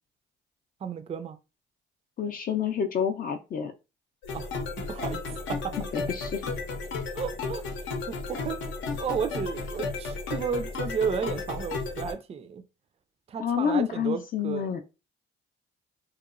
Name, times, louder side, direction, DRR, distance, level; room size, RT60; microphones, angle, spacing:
voice 1, 0.8-1.4 4.3-4.5 4.9-5.7 7.1-7.6 8.1-8.6 9.0-12.6 13.3-14.7, right 6 dB, 30° right, 0.3 m, -32 dB
voice 2, 2.2-3.7 5.9-6.4 13.4-14.8, left 7 dB, 45° left, 0.4 m, -28 dB
sound 1, 4.2-12.1, left 4 dB, 80° left, 0.6 m, -34 dB
2.9 x 2.1 x 2.4 m
cardioid pair, 90°, 20 cm